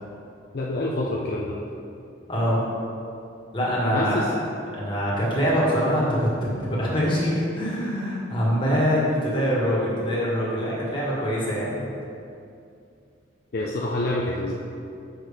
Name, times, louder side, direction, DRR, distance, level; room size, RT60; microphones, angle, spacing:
voice 1, 0.5-1.6 3.9-4.3 13.5-14.5, left 1 dB, 55° left, -3 dB, 0.5 m, -27 dB
voice 2, 2.3-2.7 3.5-4.4 4.7-11.9, equal, 25° left, -6 dB, 1.5 m, -24 dB
6.5 x 6.0 x 3.4 m, 2.5 s
head